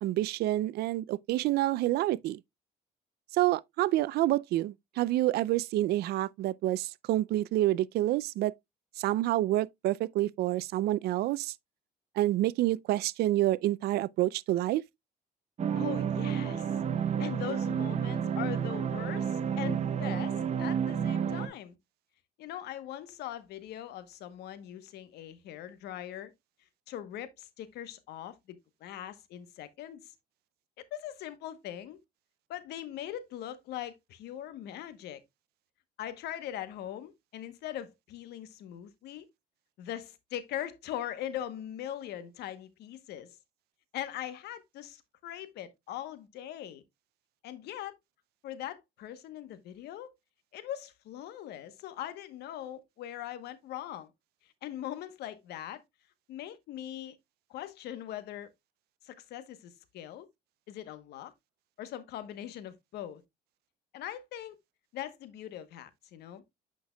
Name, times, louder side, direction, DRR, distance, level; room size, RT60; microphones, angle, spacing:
voice 1, 0.0-2.4 3.3-8.5 9.0-11.5 12.2-14.8, right 15 dB, 70° right, 0.4 m, -28 dB
sound 1, 15.6-21.5, right 8 dB, 40° right, 1.0 m, -30 dB
voice 2, 15.7-16.7 17.2-21.8 22.4-26.3 26.9-30.1 30.9-32.0 32.5-35.2 36.0-39.3 39.8-43.4 43.9-46.8 47.4-47.9 48.4-50.1 50.5-54.1 54.6-55.8 56.3-57.2 57.5-58.5 59.0-60.3 60.7-61.3 61.8-63.2 63.9-64.6 64.9-66.4, left 11 dB, 80° left, 1.0 m, -41 dB
8.4 x 5.8 x 2.2 m
cardioid pair, 110°, 17 cm